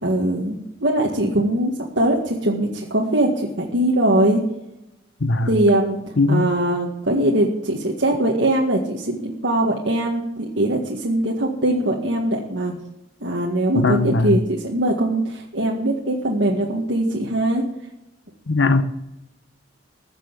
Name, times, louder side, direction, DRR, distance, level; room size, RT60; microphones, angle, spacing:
voice 1, 0.0-4.4 5.5-6.0 6.3-12.7 13.2-17.6, right 1 dB, 70° right, -2 dB, 1.9 m, -21 dB
voice 2, 6.2-6.5 13.7-14.4 18.5-18.8, left 3 dB, 75° left, 10 dB, 0.9 m, -19 dB
15.0 x 6.9 x 8.3 m, 0.90 s
head